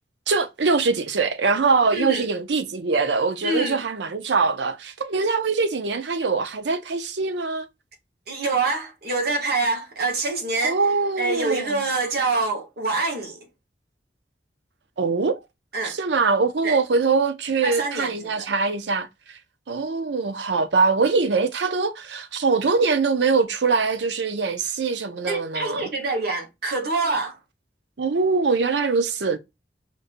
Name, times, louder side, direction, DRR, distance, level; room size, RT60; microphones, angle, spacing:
voice 1, 0.3-7.7 10.6-11.8 15.0-15.4 15.8-19.1 19.7-25.9 28.0-29.4, right 4 dB, 75° right, 0.6 m, -23 dB
voice 2, 1.9-2.3 3.4-3.8 8.3-10.8 11.2-13.4 15.7-16.0 16.6-16.8 17.6-18.5 25.2-27.4, right 3 dB, 60° right, 1.3 m, -25 dB
5.1 x 2.6 x 2.5 m
head